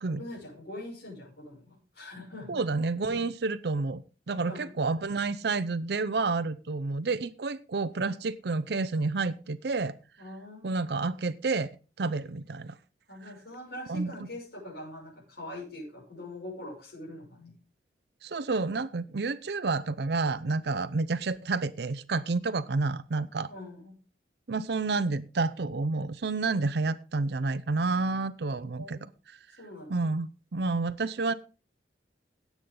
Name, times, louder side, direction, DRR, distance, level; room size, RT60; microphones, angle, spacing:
voice 1, 0.1-2.6 4.4-4.8 10.2-10.9 13.1-17.5 23.5-24.0 28.8-29.1 29.6-30.1, left 1 dB, 70° left, -6 dB, 6.5 m, -43 dB
voice 2, 2.5-4.0 4.3-9.9 10.6-11.7 12.0-12.7 13.9-14.1 18.2-23.5 24.5-29.0 29.9-31.3, right 3 dB, 65° right, 13 dB, 0.6 m, -29 dB
17.0 x 8.2 x 3.8 m, 0.34 s
head